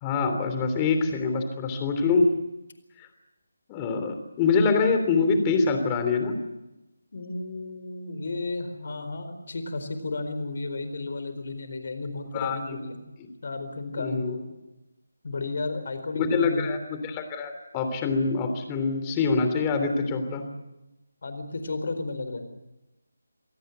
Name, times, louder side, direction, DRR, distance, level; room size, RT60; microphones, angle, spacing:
voice 1, 0.0-2.3 3.0-3.1 3.7-6.3 12.3-12.6 13.2-13.3 14.0-14.3 16.1-20.5, left 4 dB, 20° left, 7 dB, 3.2 m, -25 dB
voice 2, 7.1-13.0 13.4-14.5 15.2-16.7 21.2-22.5, left 3 dB, 55° left, 9 dB, 4.3 m, -33 dB
27.0 x 17.5 x 8.0 m, 0.99 s
figure-of-eight pair, 160°, 0 cm